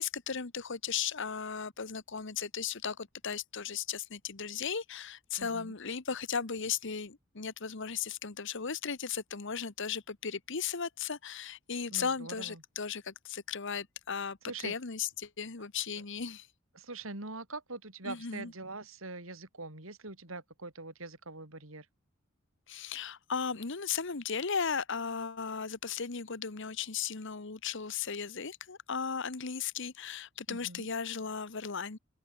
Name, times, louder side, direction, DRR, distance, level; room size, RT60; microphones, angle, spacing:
voice 1, 0.0-16.5 18.0-18.5 22.7-32.0, left 6 dB, 65° left, 1.3 m, -36 dB
voice 2, 5.4-5.7 11.9-12.6 14.5-14.7 16.7-21.9 30.5-30.9, right 3 dB, 90° right, 4.8 m, -43 dB
open air
head